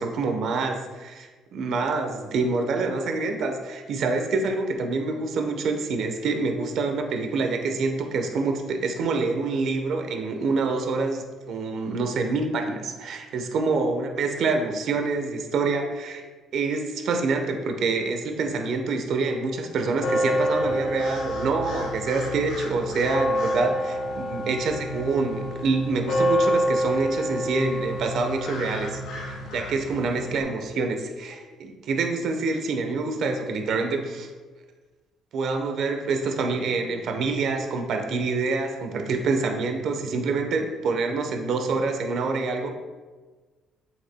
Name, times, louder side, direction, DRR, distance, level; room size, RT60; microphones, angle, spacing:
voice 1, 0.0-16.2 16.5-34.3 35.3-42.8, right 3 dB, 65° right, 5 dB, 1.0 m, -26 dB
sound 1, 20.0-30.4, equal, 85° left, 2.2 m, -28 dB
8.3 x 7.7 x 2.3 m, 1.3 s
supercardioid pair, 85°, 0 cm